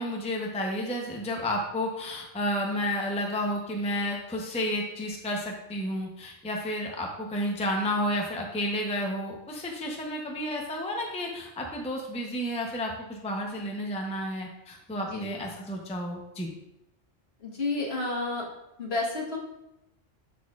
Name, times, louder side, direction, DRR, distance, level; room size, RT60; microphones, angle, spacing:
voice 1, 0.0-16.5, equal, 5° left, 0 dB, 0.6 m, -31 dB
voice 2, 15.0-15.4 17.4-18.4 18.8-19.4, left 3 dB, 60° left, -2 dB, 1.6 m, -31 dB
10.5 x 4.3 x 2.4 m, 0.88 s
omnidirectional pair, 1.2 m